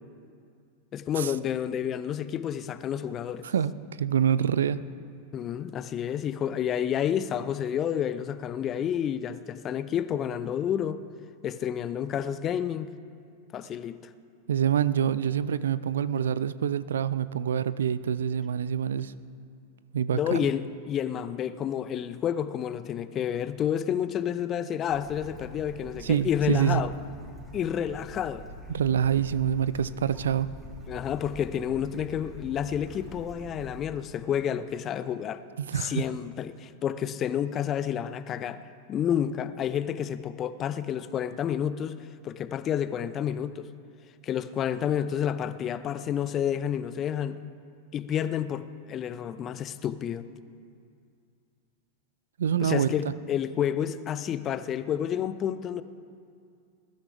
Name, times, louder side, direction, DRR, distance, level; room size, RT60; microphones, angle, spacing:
voice 1, 0.9-3.5 5.3-11.0 11.4-12.9 13.5-14.0 20.1-26.9 27.5-28.5 30.9-35.4 35.7-38.6 38.9-42.0 42.2-43.7 44.2-47.4 47.9-50.3 52.6-55.8, left 9 dB, 30° left, 14 dB, 0.5 m, -30 dB
voice 2, 4.0-4.8 14.5-19.1 19.9-20.4 26.0-26.8 28.7-30.5 35.6-36.0 52.4-52.9, right 9 dB, 65° right, 16 dB, 0.4 m, -26 dB
Bird / Stream, 24.9-33.8, right 1 dB, 10° right, 3.1 m, -45 dB
21.0 x 13.0 x 3.4 m, 2.4 s
figure-of-eight pair, 90°, 0 cm